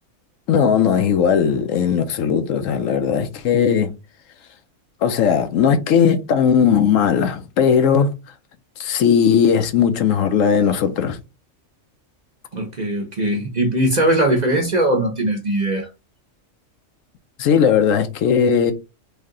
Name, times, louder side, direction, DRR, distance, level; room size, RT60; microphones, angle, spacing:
voice 1, 0.5-3.9 5.0-8.1 8.8-11.2 17.4-18.7, left 7 dB, 80° left, 1.0 m, -17 dB
voice 2, 12.5-15.9, right 1 dB, 40° right, 0.7 m, -20 dB
3.3 x 2.7 x 3.6 m
omnidirectional pair, 1.3 m